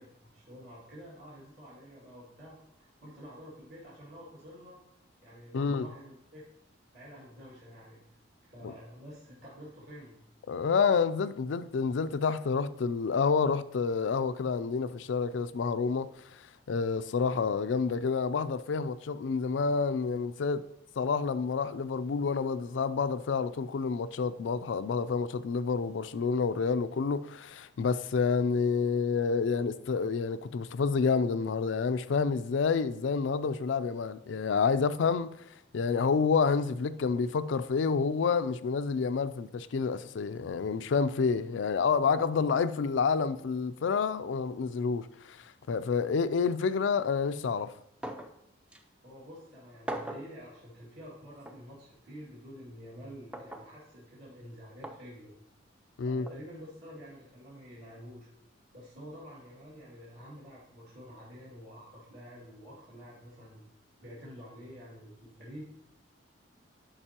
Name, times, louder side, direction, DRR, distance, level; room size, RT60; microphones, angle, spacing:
voice 1, 0.0-4.8 5.2-6.4 6.9-8.0 8.5-10.2 49.0-55.3 56.1-58.3 58.7-63.6 64.0-65.8, equal, 60° right, 2.2 m, -49 dB
voice 2, 5.5-5.8 8.6-8.7 10.5-20.6 21.0-35.4 35.7-47.7 56.0-56.3, left 5 dB, 75° left, 0.4 m, -29 dB
sound 1, 48.0-48.4 48.7-48.8 49.9-50.3 51.4-51.6 53.3-53.7 54.8-55.0 56.3-56.4, right 1 dB, 5° right, 0.4 m, -39 dB
11.0 x 5.3 x 2.9 m
head